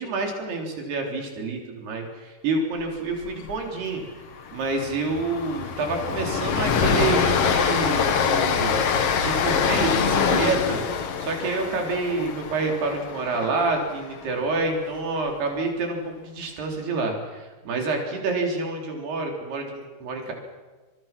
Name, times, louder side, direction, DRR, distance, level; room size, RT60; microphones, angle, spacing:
voice 1, 0.0-4.0 4.5-8.8 9.2-20.3, right 3 dB, 90° right, 1 dB, 5.7 m, -28 dB
Train, 3.2-3.5 3.8-4.0 4.3-14.5, left 6 dB, 55° left, 1.8 m, -25 dB
29.0 x 27.0 x 6.0 m, 1.3 s
omnidirectional pair, 4.5 m